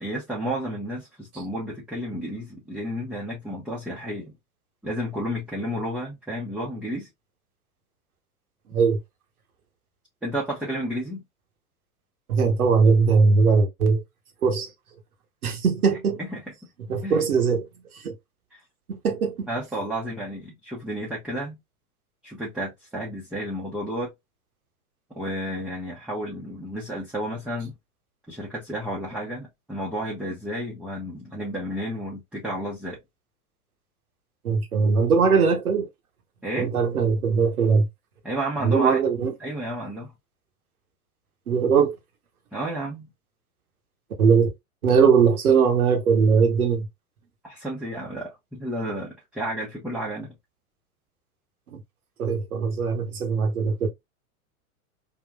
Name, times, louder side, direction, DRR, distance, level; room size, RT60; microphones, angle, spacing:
voice 1, 0.0-4.3 4.8-7.1 10.2-11.2 16.2-16.4 17.0-17.2 18.5-18.6 19.5-21.6 22.2-24.1 25.1-27.7 28.3-33.0 36.4-36.7 38.2-39.0 39.4-40.1 42.5-43.1 47.4-50.3, equal, ahead, 0.8 m, -32 dB
voice 2, 12.3-14.0 14.4-14.7 15.4-16.2 16.9-17.7 17.9-18.2 18.9-19.5 34.4-35.9 36.6-37.9 38.6-39.3 41.5-41.9 44.2-44.5 44.8-46.9 51.7-51.8 52.2-53.9, right 5 dB, 80° right, 1.0 m, -20 dB
3.7 x 2.5 x 2.2 m
hypercardioid pair, 95°, 43 cm